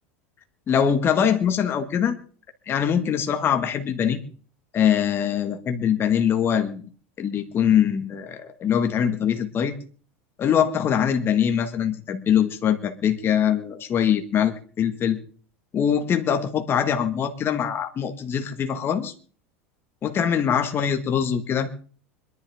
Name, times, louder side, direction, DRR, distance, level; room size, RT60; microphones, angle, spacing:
voice 1, 0.7-2.1 2.7-4.2 4.7-6.8 7.2-9.7 10.4-15.2 15.7-19.1 20.0-21.8, left 8 dB, 35° left, 6 dB, 1.9 m, -23 dB
25.5 x 11.0 x 3.7 m, 0.43 s
supercardioid pair, 110°, 7 cm